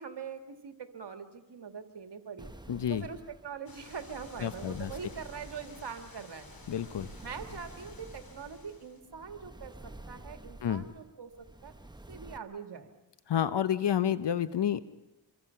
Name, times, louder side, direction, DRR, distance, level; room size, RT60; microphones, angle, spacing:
voice 1, 0.0-2.5 2.9-6.5 7.2-11.7 12.1-12.9, right 6 dB, 65° right, 7 dB, 2.0 m, -43 dB
sound 1, 2.4-12.4, right 1 dB, 10° right, 1.1 m, -50 dB
voice 2, 2.7-3.1 4.4-4.9 6.7-7.1 10.6-10.9 13.3-14.9, left 9 dB, 70° left, 14 dB, 0.9 m, -29 dB
sound 2, 3.7-9.0, left 3 dB, 50° left, 4.0 m, -53 dB
27.0 x 23.0 x 5.8 m, 0.99 s
cardioid pair, 55°, 44 cm